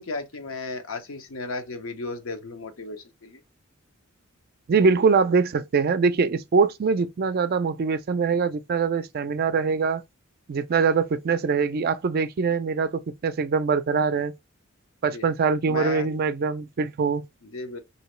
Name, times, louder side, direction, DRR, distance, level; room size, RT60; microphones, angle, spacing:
voice 1, 0.0-3.4 14.1-14.2 15.0-15.3 15.7-16.1 17.4-17.8, left 3 dB, 75° left, 0.7 m, -35 dB
voice 2, 4.7-10.0 10.5-14.3 15.0-17.2, right 5 dB, 45° right, 0.4 m, -23 dB
2.9 x 2.7 x 3.0 m
head